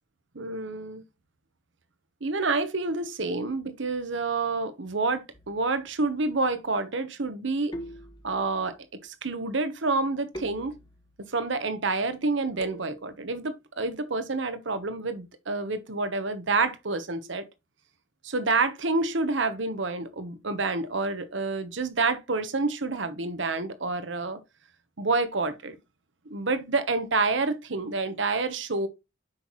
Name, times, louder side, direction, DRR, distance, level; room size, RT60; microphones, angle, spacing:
voice 1, 0.3-1.0 2.2-7.7 8.2-8.7 9.0-10.7 11.3-17.4 18.2-24.4 25.0-25.8 26.3-28.9, right 3 dB, 70° right, 1.1 m, -28 dB
sound 1, 5.3-5.9 7.7-8.7 10.3-11.3 12.6-13.3, equal, 20° left, 0.9 m, -43 dB
7.8 x 5.8 x 3.1 m
head